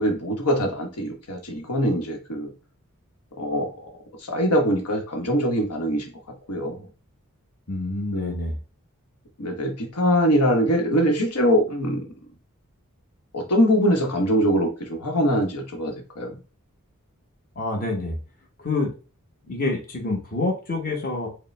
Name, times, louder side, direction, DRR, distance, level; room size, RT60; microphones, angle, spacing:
voice 1, 0.0-2.5 3.4-3.7 4.2-6.1 6.5-6.9 8.1-8.4 9.4-12.0 13.3-16.4, equal, 90° left, 2 dB, 1.0 m, -23 dB
voice 2, 7.7-8.6 17.5-18.2 18.6-18.9 19.5-21.3, left 2 dB, 40° left, 0 dB, 1.0 m, -27 dB
5.0 x 2.1 x 3.2 m, 0.34 s
head